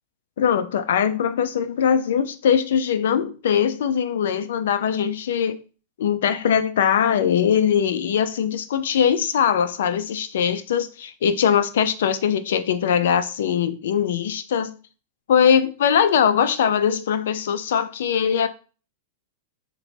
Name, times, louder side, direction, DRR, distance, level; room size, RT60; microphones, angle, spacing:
voice 1, 0.4-5.6 6.0-14.8 15.3-18.5, left 8 dB, 75° left, 0.4 m, -21 dB
3.9 x 2.1 x 3.1 m
supercardioid pair, 145°, 0 cm